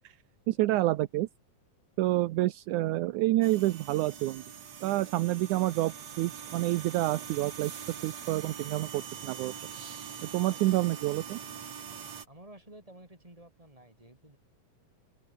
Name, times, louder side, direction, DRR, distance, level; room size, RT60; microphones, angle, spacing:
voice 1, 0.5-1.3 2.0-4.4 4.8-9.5 10.2-11.4, right 17 dB, 80° right, 2.2 m, -28 dB
sound 1, 3.4-12.3, right 8 dB, 60° right, 3.5 m, -43 dB
voice 2, 12.3-14.4, right 1 dB, 10° right, 6.0 m, -52 dB
open air
omnidirectional pair, 3.6 m